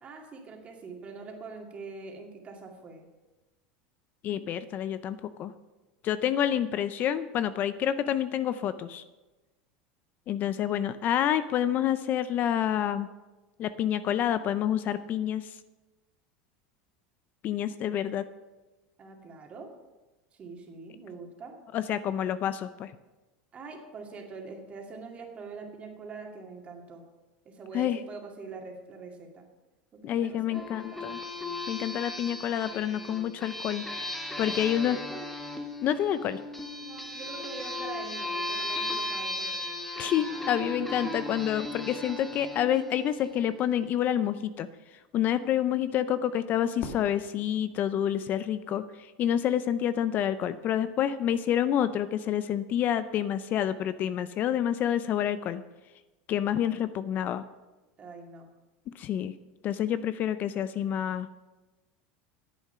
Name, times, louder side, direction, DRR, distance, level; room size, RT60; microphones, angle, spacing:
voice 1, 0.0-3.0 19.0-19.7 20.3-21.6 23.5-27.0 27.4-29.5 30.0-31.1 34.4-35.3 36.8-39.5 40.5-40.6 58.0-58.5, right 4 dB, 30° right, 1 dB, 2.3 m, -44 dB
voice 2, 4.2-5.5 6.0-9.0 10.3-13.1 13.6-15.5 17.4-18.2 21.7-22.9 27.7-28.0 30.0-31.2 31.7-33.8 34.4-35.0 35.8-36.4 40.0-44.7 45.1-48.8 49.2-55.6 56.3-57.4 59.0-59.3 59.6-61.3, left 10 dB, 40° left, 13 dB, 0.5 m, -28 dB
sound 1, 30.5-43.7, left 1 dB, 5° left, 1.2 m, -36 dB
Fireworks, 46.8-49.0, left 4 dB, 60° left, 1.9 m, -45 dB
10.5 x 8.0 x 5.7 m, 1.1 s
supercardioid pair, 125°, 4 cm